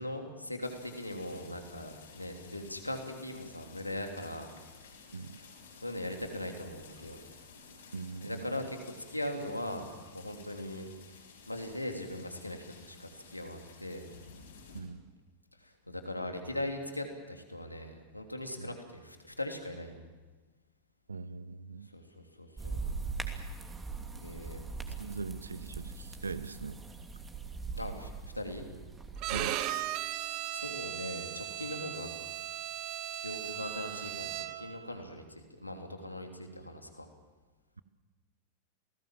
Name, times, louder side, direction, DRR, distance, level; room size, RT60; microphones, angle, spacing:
voice 1, 0.0-4.5 5.8-7.2 8.2-9.9 10.1-10.9 11.5-14.1 15.6-20.1 21.9-22.8 24.1-24.6 27.8-28.7 30.0-30.2 30.5-32.1 33.1-37.1, left 1 dB, 85° left, 4 dB, 3.1 m, -40 dB
sound 1, 0.6-14.8, left 5 dB, 65° left, 6.9 m, -54 dB
voice 2, 7.9-8.7 14.7-15.0 18.6-18.7 21.1-21.9 25.0-26.8 29.3-29.6, right 4 dB, 75° right, 16 dB, 1.1 m, -41 dB
sound 2, 22.6-29.4, right 4 dB, 15° right, 2.9 m, -41 dB
Bowed string instrument, 29.2-34.8, right 12 dB, 40° right, 1.4 m, -37 dB
29.0 x 19.5 x 7.5 m, 1.3 s
figure-of-eight pair, 90°, 0 cm